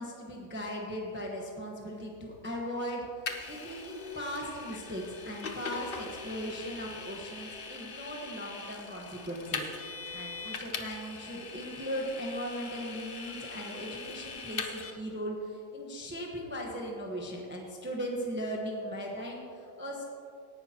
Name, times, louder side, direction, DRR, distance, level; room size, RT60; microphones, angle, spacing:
voice 1, 0.0-20.0, equal, 10° right, -1 dB, 1.0 m, -38 dB
Vehicle, 3.3-14.9, left 4 dB, 45° left, 0.7 m, -41 dB
17.5 x 10.5 x 2.9 m, 2.5 s
omnidirectional pair, 1.8 m